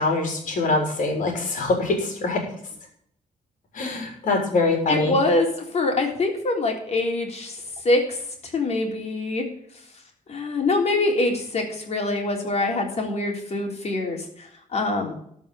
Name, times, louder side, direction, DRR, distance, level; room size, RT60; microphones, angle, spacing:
voice 1, 0.0-2.4 3.7-5.2, left 3 dB, 70° left, 1 dB, 3.5 m, -23 dB
voice 2, 4.9-9.5 10.3-15.1, left 2 dB, 50° left, 2 dB, 3.5 m, -24 dB
13.0 x 5.4 x 8.2 m, 0.69 s
cardioid pair, 80°, 14 cm